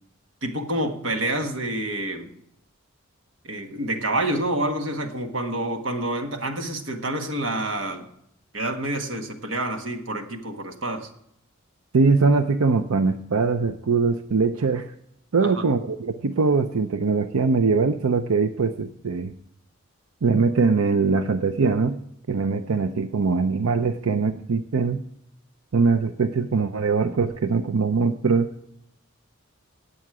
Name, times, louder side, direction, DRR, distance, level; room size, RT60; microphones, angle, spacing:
voice 1, 0.4-2.3 3.4-8.1 8.5-11.1 15.4-15.6, right 1 dB, 60° right, 5 dB, 1.5 m, -28 dB
voice 2, 11.9-14.9 15.3-19.3 20.2-22.0 22.3-25.0 25.7-28.5, right 4 dB, 90° right, 9 dB, 0.6 m, -22 dB
17.0 x 8.4 x 4.8 m, 0.75 s
head